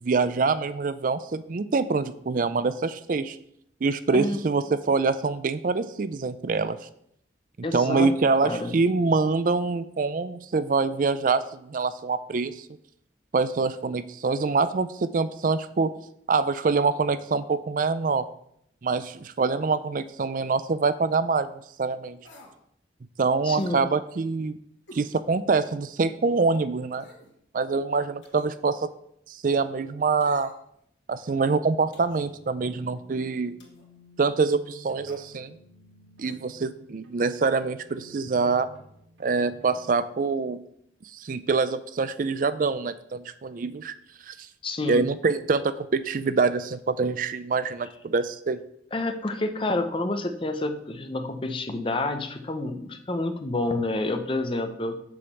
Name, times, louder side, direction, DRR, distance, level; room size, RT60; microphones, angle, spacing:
voice 1, 0.0-3.4 3.8-6.8 7.7-12.7 13.3-15.9 16.3-18.3 18.8-21.5 21.8-22.2 23.2-24.6 24.9-27.1 27.5-28.9 29.3-30.5 31.1-33.6 34.2-35.6 36.2-38.7 39.2-40.6 41.1-43.9 44.3-44.4 44.9-48.6, right 4 dB, 45° right, 14 dB, 0.4 m, -25 dB
voice 2, 7.6-8.1 8.4-8.7 23.4-23.8 44.6-45.0 48.9-55.0, left 2 dB, 30° left, 7 dB, 0.8 m, -28 dB
sound 1, 22.2-22.6 23.6-23.8 24.9-25.1 25.6-25.7 26.9-27.3 28.2-28.6 30.2-30.8 31.9-32.3 33.6-33.9 35.0-35.3 36.2-36.4 36.7-36.8, left 1 dB, 90° left, 2.2 m, -49 dB
sound 2, 31.9-40.0, right 2 dB, 85° right, 2.0 m, -52 dB
7.0 x 5.1 x 6.9 m, 0.71 s
head